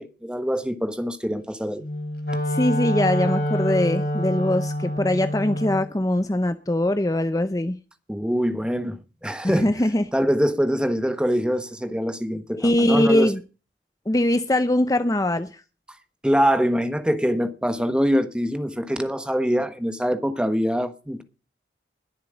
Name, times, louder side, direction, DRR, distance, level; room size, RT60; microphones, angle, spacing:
voice 1, 0.0-1.8 8.1-9.7 10.1-13.3 16.2-21.2, equal, 5° right, 1.2 m, -24 dB
Wind instrument woodwind instrument, 1.8-5.9, equal, 60° left, 3.9 m, -26 dB
voice 2, 2.5-7.8 9.4-10.0 12.5-13.4 14.1-15.6, left 1 dB, 20° left, 0.6 m, -22 dB
21.0 x 7.5 x 5.1 m
head